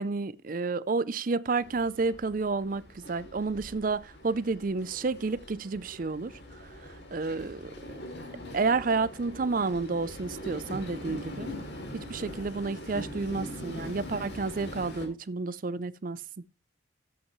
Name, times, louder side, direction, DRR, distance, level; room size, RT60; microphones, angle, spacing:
voice 1, 0.0-6.3 7.1-7.6 8.5-11.5 12.1-16.2, right 4 dB, 45° right, 0.5 m, -30 dB
Train, 1.6-15.1, left 1 dB, 55° left, 2.8 m, -42 dB
13.5 x 8.0 x 3.1 m
head